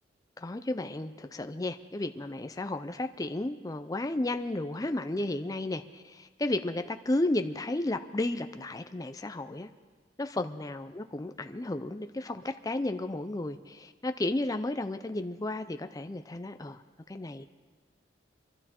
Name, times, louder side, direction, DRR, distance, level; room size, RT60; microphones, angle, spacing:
voice 1, 0.4-9.7 10.2-16.8 17.1-17.5, left 2 dB, 20° left, 8 dB, 0.5 m, -33 dB
24.0 x 12.5 x 4.3 m, 1.5 s
head